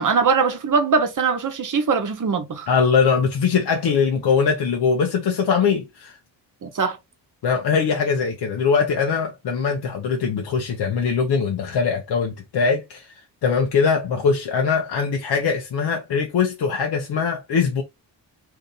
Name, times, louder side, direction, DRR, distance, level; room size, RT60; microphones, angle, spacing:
voice 1, 0.0-2.7 6.6-7.0, right 5 dB, 45° right, 1.0 m, -21 dB
voice 2, 2.7-6.2 7.4-13.1 13.4-17.8, left 5 dB, 60° left, 0.7 m, -21 dB
2.7 x 2.5 x 3.8 m
cardioid pair, 70°, 44 cm